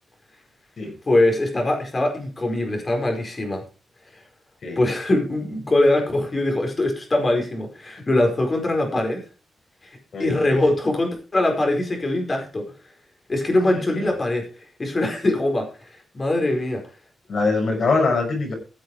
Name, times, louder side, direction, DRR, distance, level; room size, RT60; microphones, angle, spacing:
voice 1, 1.1-3.6 4.7-9.2 9.8-9.9 10.2-12.6 13.3-14.4 14.8-15.7 16.1-16.8, left 1 dB, 30° left, 3 dB, 4.9 m, -22 dB
voice 2, 10.1-10.6 13.6-14.1 17.3-18.5, left 3 dB, 50° left, 2 dB, 6.6 m, -23 dB
16.0 x 7.8 x 5.0 m, 0.35 s
wide cardioid pair, 130°, 0 cm